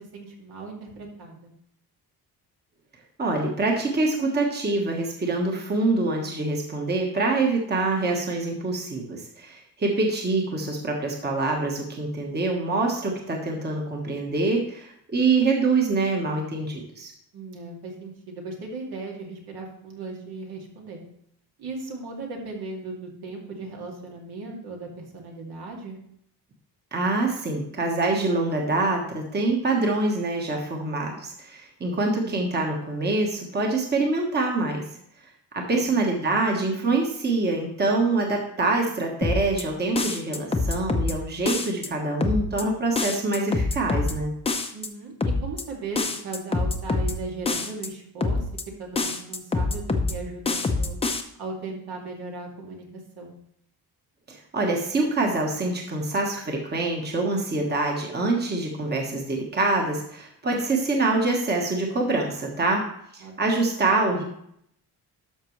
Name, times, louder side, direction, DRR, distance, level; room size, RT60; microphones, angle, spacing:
voice 1, 0.0-1.5 17.3-21.0 21.6-26.0 32.0-32.4 35.7-35.8 44.7-48.4 48.8-51.0 51.4-53.3 63.2-63.5, right 3 dB, 75° right, -1 dB, 2.4 m, -37 dB
voice 2, 3.2-17.1 26.9-34.8 35.5-44.3 54.3-62.8 63.1-64.2, right 3 dB, 25° right, 0 dB, 1.2 m, -25 dB
sound 1, 39.2-39.6 40.0-41.1 41.5-41.9 42.2-42.6 43.0-44.1 44.4-44.9 45.2-45.6 46.0-47.1 47.5-47.9 48.2-48.6 48.9-50.1 50.4-51.2, left 3 dB, 15° left, 0.6 m, -25 dB
12.5 x 6.0 x 3.1 m, 0.70 s
cardioid pair, 165°, 38 cm